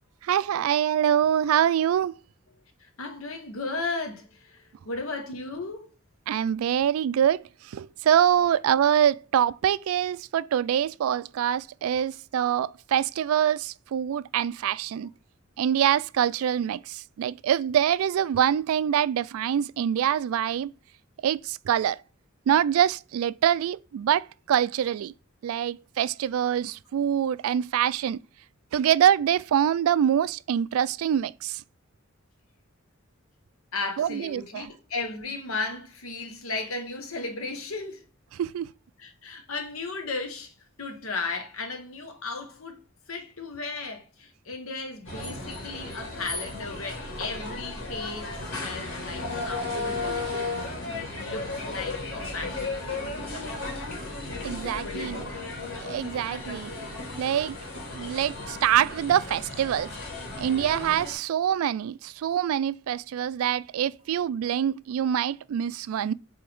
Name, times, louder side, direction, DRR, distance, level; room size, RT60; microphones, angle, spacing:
voice 1, 0.2-2.1 6.3-15.1 15.6-20.7 21.2-22.0 22.5-25.1 25.4-28.2 28.7-31.6 34.0-34.7 38.4-38.7 54.4-55.2 55.8-56.7 57.2-57.6 57.9-59.9 60.4-66.1, right 9 dB, 85° right, 0.3 m, -25 dB
voice 2, 2.8-5.9 33.7-38.0 39.0-42.8 43.1-50.7 51.2-53.1 54.8-55.5, left 3 dB, 90° left, 1.2 m, -35 dB
sound 1, 45.0-61.1, left 2 dB, 70° left, 2.1 m, -35 dB
7.8 x 3.4 x 3.5 m
head